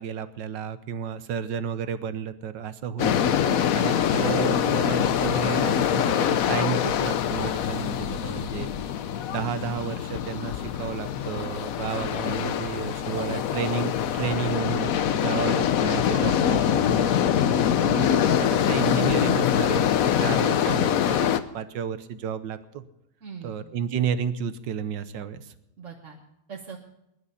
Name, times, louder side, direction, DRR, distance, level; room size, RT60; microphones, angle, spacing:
voice 1, 0.0-3.3 3.7-8.7 9.3-17.0 17.8-21.3 21.5-22.8 23.4-25.5, right 7 dB, 65° right, 12 dB, 1.5 m, -32 dB
sound 1, 3.0-21.4, left 9 dB, 70° left, 0.8 m, -24 dB
voice 2, 16.1-16.4 16.8-17.1 23.2-23.6 25.8-26.2 26.5-26.8, right 6 dB, 40° right, -1 dB, 1.6 m, -38 dB
21.5 x 11.0 x 4.2 m, 0.85 s
omnidirectional pair, 2.3 m